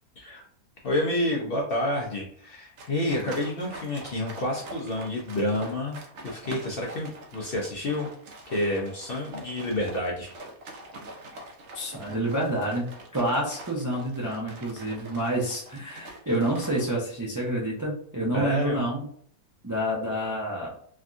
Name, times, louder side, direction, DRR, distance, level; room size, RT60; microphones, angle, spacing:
voice 1, 0.8-6.0 6.2-8.1 8.5-10.3 18.3-18.8, left 1 dB, 55° left, -2 dB, 0.7 m, -29 dB
sound 1, 2.8-16.9, right 1 dB, 60° right, 0.8 m, -44 dB
voice 2, 11.7-19.1 19.6-20.8, right 1 dB, 25° right, -3 dB, 0.4 m, -28 dB
3.4 x 2.3 x 2.5 m, 0.62 s
omnidirectional pair, 1.6 m